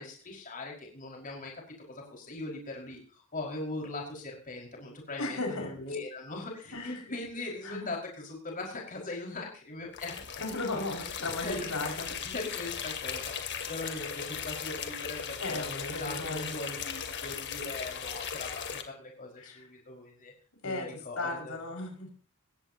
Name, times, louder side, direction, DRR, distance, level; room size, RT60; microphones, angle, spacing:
voice 1, 0.0-1.5 1.9-10.1 11.4-20.3 20.6-21.6, left 2 dB, 40° left, 0 dB, 5.2 m, -40 dB
voice 2, 5.2-5.7 6.7-7.0 7.6-7.9 10.4-12.3 15.4-16.6 19.4-19.6 20.6-22.1, left 2 dB, 75° left, 1 dB, 5.7 m, -36 dB
sound 1, 9.9-18.8, left 7 dB, 55° left, 2.4 m, -38 dB
20.0 x 16.0 x 2.9 m, 0.39 s
head